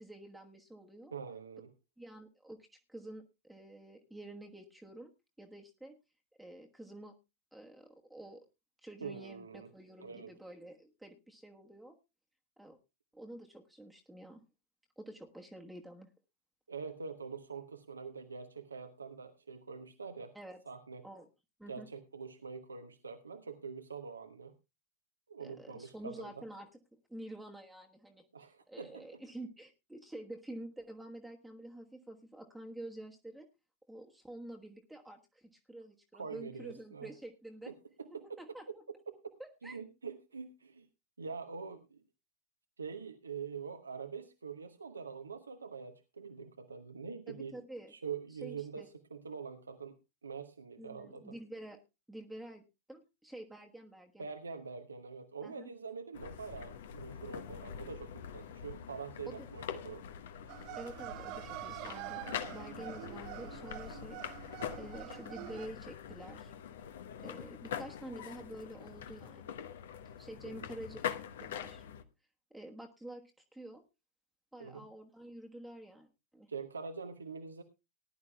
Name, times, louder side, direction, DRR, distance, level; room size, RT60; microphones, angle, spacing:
voice 1, 0.0-1.1 2.0-5.1 5.4-6.0 6.4-7.1 7.5-8.5 8.8-11.9 12.6-12.8 13.1-14.4 15.0-16.1 20.3-20.6 21.0-21.3 21.6-21.9 25.4-26.7 27.1-28.2 28.7-33.5 33.9-37.7 38.1-38.8 39.4-39.8 47.3-47.9 48.3-48.9 50.8-51.8 52.1-52.6 52.9-54.3 55.4-55.7 59.2-59.5 60.8-64.2 64.7-66.5 67.2-69.5 70.2-71.1 71.4-71.8 72.5-73.2 73.5-73.8 74.5-76.5, right 1 dB, 5° right, 2 dB, 1.3 m, -49 dB
voice 2, 1.1-1.7 9.0-9.7 10.0-10.3 16.7-20.4 20.7-21.0 21.7-24.5 25.3-26.3 28.3-29.2 36.1-37.1 37.7-38.4 39.1-39.3 39.6-40.9 41.2-42.0 42.8-47.6 47.9-51.3 54.2-60.1 70.4-70.7 74.6-74.9 76.5-77.6, right 5 dB, 75° right, 8 dB, 0.9 m, -45 dB
sound 1, 56.1-72.0, left 8 dB, 60° left, 1.0 m, -44 dB
sound 2, 60.5-65.7, right 20 dB, 45° right, 0.6 m, -46 dB
19.0 x 11.0 x 2.3 m, 0.26 s
figure-of-eight pair, 90°, 0 cm